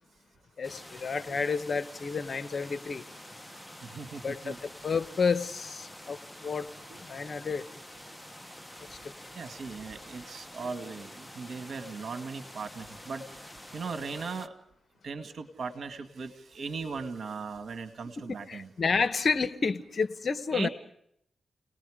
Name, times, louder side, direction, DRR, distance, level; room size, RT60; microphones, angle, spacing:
voice 1, 0.6-3.0 4.2-6.7 7.0-7.6 8.9-9.1 18.2-20.7, left 5 dB, 55° left, 1.1 m, -30 dB
sound 1, 0.6-14.5, left 1 dB, 5° left, 1.3 m, -47 dB
voice 2, 3.8-4.6 6.9-7.0 9.4-14.5 15.0-18.7 20.5-20.7, right 4 dB, 65° right, 2.1 m, -38 dB
30.0 x 20.0 x 5.0 m
cardioid pair, 60°, 0 cm